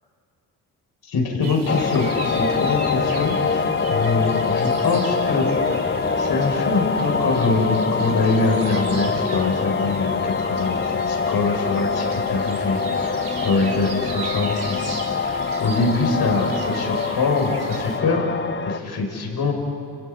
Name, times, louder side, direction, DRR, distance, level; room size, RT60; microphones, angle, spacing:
voice 1, 1.1-3.6 3.9-5.8 6.2-18.3 18.6-19.5, left 3 dB, 60° left, 1 dB, 6.9 m, -24 dB
sound 1, 1.4-18.0, right 5 dB, 65° right, 4.2 m, -38 dB
sound 2, 1.7-18.8, left 5 dB, 25° left, 1.0 m, -24 dB
29.5 x 17.0 x 8.6 m, 2.6 s
supercardioid pair, 55°, 43 cm